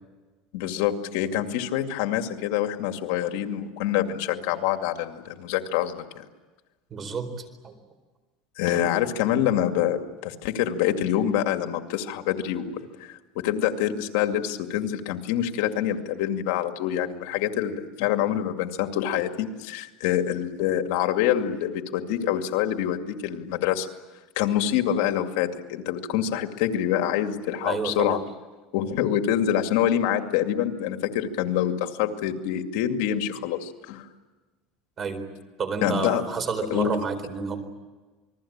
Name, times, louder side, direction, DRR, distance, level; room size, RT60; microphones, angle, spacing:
voice 1, 0.5-6.3 8.6-12.7 13.0-23.9 24.4-28.2 28.7-34.1 35.8-36.2 36.7-36.9, left 10 dB, 70° left, 6 dB, 2.3 m, -26 dB
voice 2, 6.9-7.8 27.6-28.2 35.0-35.2 35.6-37.6, right 5 dB, 25° right, 9 dB, 4.2 m, -30 dB
28.5 x 21.0 x 8.8 m, 1.3 s
cardioid pair, 160°, 0 cm